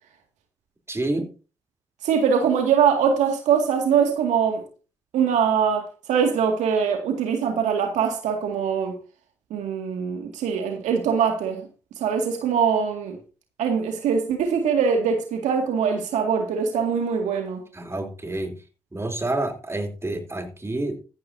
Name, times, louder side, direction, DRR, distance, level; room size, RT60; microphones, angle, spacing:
voice 1, 0.9-1.3 17.7-18.6 18.9-21.0, right 2 dB, 20° right, 3.6 m, -28 dB
voice 2, 2.0-4.6 5.1-9.0 9.5-11.6 12.0-13.2 13.6-17.6, right 7 dB, 75° right, 2.2 m, -22 dB
14.5 x 11.5 x 2.8 m
hypercardioid pair, 50°, 12 cm